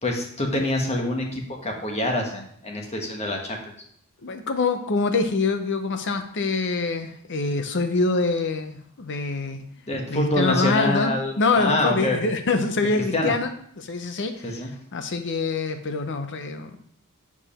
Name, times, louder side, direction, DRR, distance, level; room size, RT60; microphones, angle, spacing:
voice 1, 0.0-3.7 9.9-12.2 12.9-13.3 14.4-14.7, left 1 dB, 30° left, 1 dB, 1.2 m, -26 dB
voice 2, 4.2-9.7 10.1-14.6 14.9-16.8, left 3 dB, 55° left, 8 dB, 0.7 m, -25 dB
7.0 x 4.9 x 4.2 m, 0.65 s
head